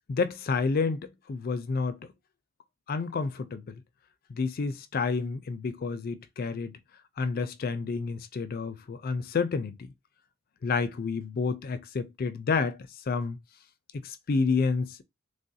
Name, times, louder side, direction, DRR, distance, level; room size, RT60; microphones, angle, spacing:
voice 1, 0.1-2.0 2.9-3.8 4.3-6.8 7.2-9.9 10.6-13.4 13.9-15.0, left 4 dB, 45° left, 0.4 m, -29 dB
3.4 x 2.3 x 2.6 m
head